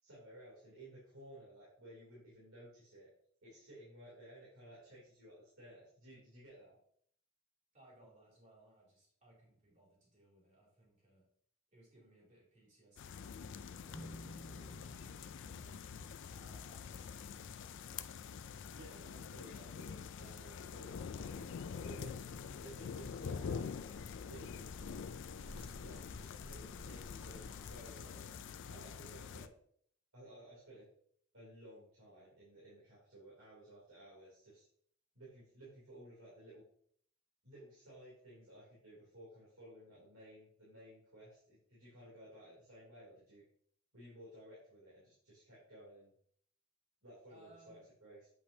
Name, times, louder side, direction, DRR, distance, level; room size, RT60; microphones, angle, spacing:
voice 1, 0.0-3.1 3.4-6.8 18.7-21.5 21.8-22.2 22.6-23.8 24.2-24.7 25.6-28.3 28.7-29.5 30.1-30.9 31.3-34.7 35.1-36.6 37.4-43.4 43.9-46.1 47.0-48.3, right 1 dB, 85° right, -8 dB, 3.1 m, -56 dB
voice 2, 7.7-11.3 11.7-13.0 13.3-15.8 16.3-18.1 47.3-47.9, right 1 dB, 35° right, -4 dB, 3.0 m, -65 dB
sound 1, 13.0-29.5, left 6 dB, 60° left, 0.4 m, -46 dB
sound 2, 13.9-20.3, equal, 30° left, 1.6 m, -57 dB
Bird, 20.8-27.8, equal, 10° left, 0.9 m, -56 dB
8.3 x 5.1 x 2.8 m, 0.62 s
head